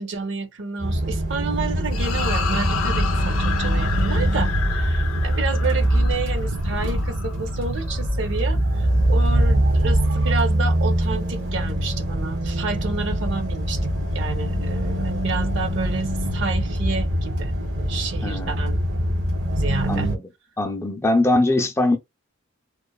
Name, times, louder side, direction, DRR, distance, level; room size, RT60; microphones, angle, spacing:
voice 1, 0.0-13.9 14.1-18.8 19.5-20.1, right 4 dB, 55° right, 0.5 m, -30 dB
sound 1, 0.8-20.2, right 1 dB, 75° right, 1.0 m, -23 dB
sound 2, 1.9-8.5, left 7 dB, 85° left, 0.5 m, -32 dB
voice 2, 14.5-15.0 18.2-18.6 19.9-20.2 20.6-22.0, left 2 dB, 10° left, 0.4 m, -22 dB
3.1 x 2.0 x 2.2 m
head